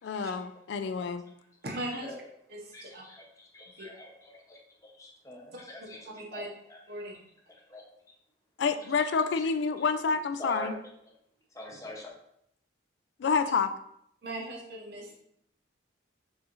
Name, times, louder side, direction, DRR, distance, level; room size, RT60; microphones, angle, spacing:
voice 1, 0.0-1.2 8.6-10.8 13.2-13.7, left 5 dB, 60° left, 10 dB, 0.3 m, -28 dB
voice 2, 1.6-2.1 2.5-3.0 3.7-3.9 5.5-6.5 6.9-7.2 14.2-15.2, right 1 dB, 55° right, 0 dB, 0.8 m, -39 dB
voice 3, 2.7-3.2 3.5-6.8 7.7-7.8 9.0-9.1 9.4-9.5 9.8-9.9 10.4-10.7 11.5-12.1, left 1 dB, 15° left, 0 dB, 0.7 m, -44 dB
6.2 x 2.5 x 2.9 m, 0.74 s
head